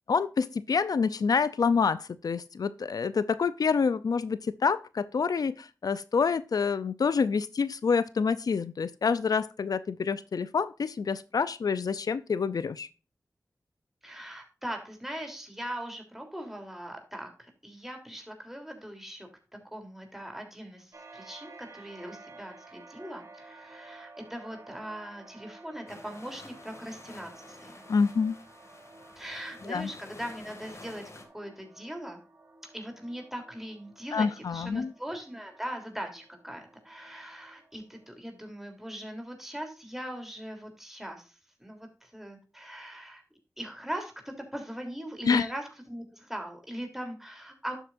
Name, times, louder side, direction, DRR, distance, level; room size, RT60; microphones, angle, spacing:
voice 1, 0.1-12.9 27.9-28.4 29.7-29.9 34.1-34.9 45.2-45.5, left 5 dB, 85° left, 0.5 m, -27 dB
voice 2, 14.0-19.3 19.7-27.8 29.2-31.0 31.3-32.2 32.7-43.2 43.6-44.1 44.5-47.8, equal, 5° right, 3.3 m, -40 dB
sound 1, 20.9-38.2, right 3 dB, 45° right, 2.3 m, -53 dB
sound 2, 25.9-31.2, left 2 dB, 50° left, 2.2 m, -50 dB
11.5 x 8.1 x 2.6 m
wide cardioid pair, 80°, 6 cm